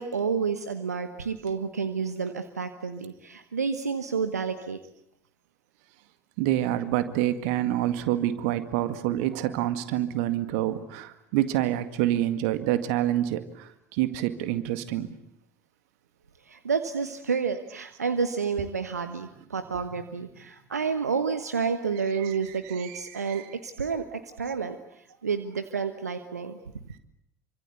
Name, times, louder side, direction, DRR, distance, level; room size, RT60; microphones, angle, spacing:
voice 1, 0.0-4.8 16.5-26.6, right 5 dB, 85° right, 9 dB, 1.3 m, -30 dB
voice 2, 6.4-15.2 22.2-23.5, right 13 dB, 60° right, 11 dB, 2.0 m, -27 dB
27.5 x 25.0 x 8.3 m, 0.76 s
figure-of-eight pair, 65°, 8 cm